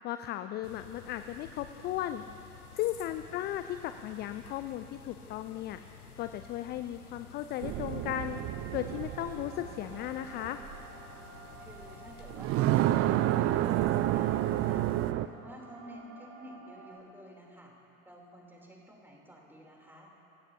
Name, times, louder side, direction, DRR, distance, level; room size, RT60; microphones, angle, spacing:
voice 1, 0.0-2.2 2.7-5.8 6.2-8.4 8.7-10.6, left 12 dB, 25° left, 10 dB, 0.3 m, -36 dB
sound 1, 0.6-15.1, left 6 dB, 90° left, 0.8 m, -52 dB
sound 2, 7.5-17.0, right 4 dB, 50° right, 3.4 m, -52 dB
sound 3, 7.6-10.7 12.2-15.3, right 14 dB, 35° right, 0.5 m, -29 dB
voice 2, 11.6-14.9 15.2-17.7 18.0-20.1, equal, 5° right, -2 dB, 3.4 m, -51 dB
26.0 x 16.5 x 2.9 m, 2.8 s
figure-of-eight pair, 70°, 44 cm